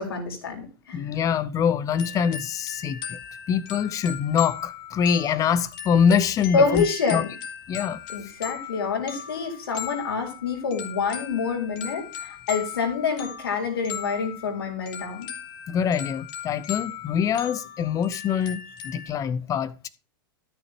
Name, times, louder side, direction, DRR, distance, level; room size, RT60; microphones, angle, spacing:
voice 1, 0.0-1.0 6.5-7.3 8.1-15.3, left 5 dB, 90° left, 3.9 m, -27 dB
voice 2, 0.9-3.2 3.5-6.8 7.1-7.2 7.7-8.0 15.7-19.9, left 7 dB, 30° left, 0.8 m, -24 dB
sound 1, 1.9-19.1, left 8 dB, 60° left, 3.3 m, -38 dB
13.0 x 6.7 x 2.9 m
hypercardioid pair, 120°, 12 cm